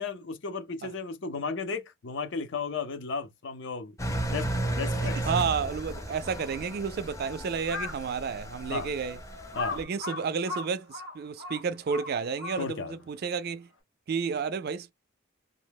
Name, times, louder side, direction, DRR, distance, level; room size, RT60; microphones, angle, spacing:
voice 1, 0.0-4.0 4.3-5.2 8.7-8.9 9.5-9.8 12.6-13.0, left 4 dB, 60° left, 0.5 m, -34 dB
Engine, 4.0-9.8, right 1 dB, 15° left, 0.5 m, -34 dB
voice 2, 5.2-9.2 9.7-13.7 14.1-14.9, right 6 dB, 50° right, 0.3 m, -31 dB
Crow, 7.6-8.1 8.7-8.8 9.5-12.9, left 4 dB, 85° left, 0.9 m, -37 dB
2.8 x 2.1 x 3.4 m
head